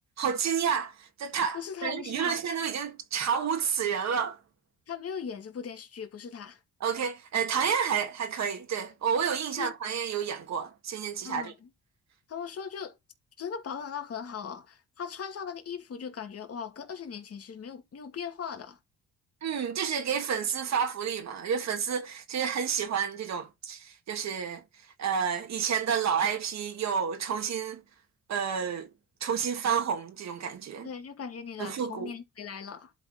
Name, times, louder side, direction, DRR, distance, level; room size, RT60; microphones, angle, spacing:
voice 1, 0.2-4.4 6.8-11.5 19.4-24.6 25.0-27.8 28.3-28.9 29.2-30.9 31.6-32.1, right 7 dB, 60° right, 1.8 m, -30 dB
voice 2, 1.5-2.4 4.9-6.6 9.5-9.7 11.2-11.7 12.3-12.9 13.4-18.8 30.8-32.9, left 7 dB, 50° left, 2.3 m, -39 dB
11.5 x 4.3 x 4.7 m
cardioid pair, 90°, 30 cm